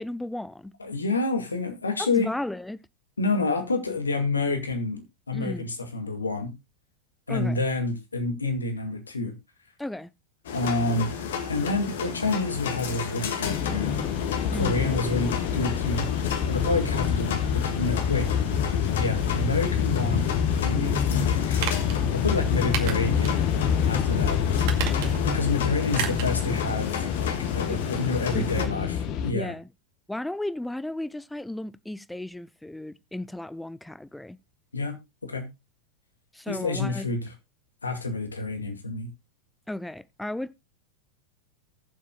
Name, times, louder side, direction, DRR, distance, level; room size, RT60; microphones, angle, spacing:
voice 1, 0.0-0.7 2.0-2.8 5.3-5.7 7.3-7.6 9.8-10.1 14.5-14.8 27.7-27.8 28.3-28.9 29.3-29.7 30.1-34.4 36.3-37.1 39.7-40.5, left 1 dB, 5° left, 0.6 m, -34 dB
voice 2, 0.8-2.3 3.2-6.5 7.3-9.3 10.5-11.1 11.5-14.0 14.6-16.1 16.5-18.3 18.9-20.3 20.6-21.4 22.1-23.4 23.8-24.4 25.2-29.5 34.7-35.0 35.2-35.5 36.5-37.3 37.8-39.1, left 3 dB, 75° left, 2.2 m, -28 dB
sound 1, 10.4-28.7, left 7 dB, 60° left, 1.9 m, -33 dB
sound 2, 13.4-29.3, left 8 dB, 40° left, 1.3 m, -27 dB
sound 3, 21.6-22.0 22.7-23.4 23.8-23.9 24.6-25.3 25.9-26.4 26.7-26.8, right 9 dB, 50° right, 2.2 m, -32 dB
20.0 x 7.4 x 2.3 m
figure-of-eight pair, 90°, 0 cm